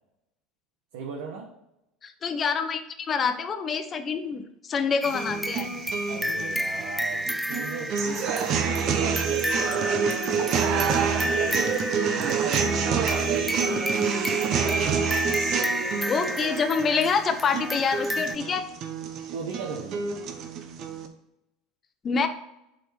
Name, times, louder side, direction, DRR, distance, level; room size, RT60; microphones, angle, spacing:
voice 1, 0.9-1.5 6.1-14.1 19.3-20.0, right 5 dB, 80° right, 0 dB, 1.2 m, -38 dB
voice 2, 2.0-5.7 13.7-14.0 16.1-18.7 22.0-22.3, left 5 dB, 35° left, 8 dB, 0.9 m, -27 dB
sound 1, 5.0-18.4, equal, ahead, 0.3 m, -32 dB
sound 2, 5.1-21.1, right 6 dB, 55° right, 1.0 m, -27 dB
7.8 x 4.4 x 4.4 m, 0.86 s
hypercardioid pair, 90°, 0 cm